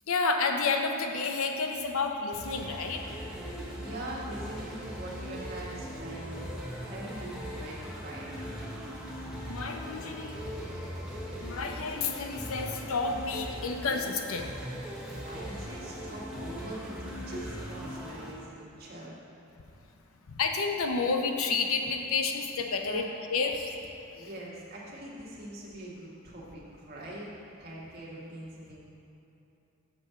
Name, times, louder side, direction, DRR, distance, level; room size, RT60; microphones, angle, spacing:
voice 1, 0.1-3.0 9.5-10.4 11.4-14.5 20.3-23.7 24.1-24.3, left 4 dB, 80° left, 4 dB, 0.7 m, -30 dB
sound 1, 2.3-18.3, equal, 5° right, 0.9 m, -39 dB
voice 2, 3.5-8.6 15.1-19.1 22.8-23.0 24.2-28.8, right 1 dB, 45° right, -6 dB, 1.5 m, -43 dB
6.9 x 4.4 x 6.8 m, 2.9 s
head